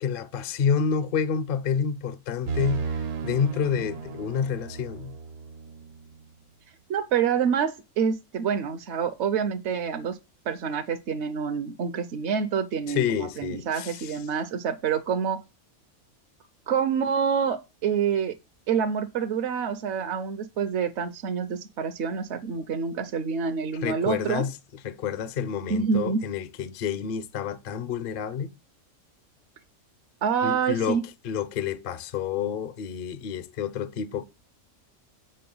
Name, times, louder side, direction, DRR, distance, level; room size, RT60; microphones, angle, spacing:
voice 1, 0.0-2.8 3.2-5.1 12.9-14.2 23.8-24.5 24.8-28.5 30.4-31.0 31.2-34.2, left 7 dB, 60° left, 0.5 m, -29 dB
sound 1, 2.5-6.2, right 5 dB, 90° right, 1.4 m, -34 dB
voice 2, 6.9-10.2 10.5-15.4 16.7-18.3 18.7-24.4 25.7-26.2 30.2-31.0, right 7 dB, 60° right, 0.8 m, -27 dB
7.7 x 5.0 x 5.4 m
omnidirectional pair, 1.5 m